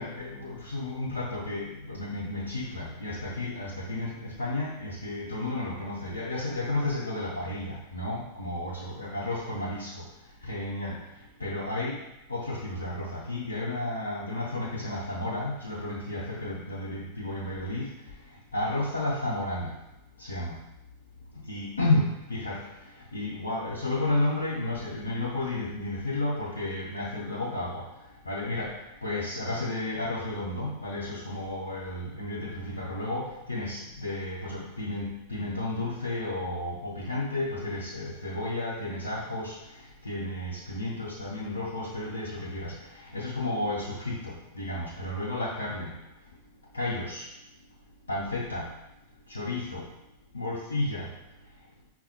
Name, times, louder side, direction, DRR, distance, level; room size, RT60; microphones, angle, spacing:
voice 1, 0.0-10.1 10.4-11.0 11.4-12.0 12.3-17.9 18.5-19.7 20.2-20.6 21.5-22.7 23.1-27.9 28.3-39.6 40.0-45.9 46.7-47.3 48.1-48.7 49.3-49.9 50.3-51.1, left 2 dB, 75° left, -6 dB, 0.6 m, -32 dB
5.3 x 2.2 x 2.8 m, 0.94 s
figure-of-eight pair, 90°, 0 cm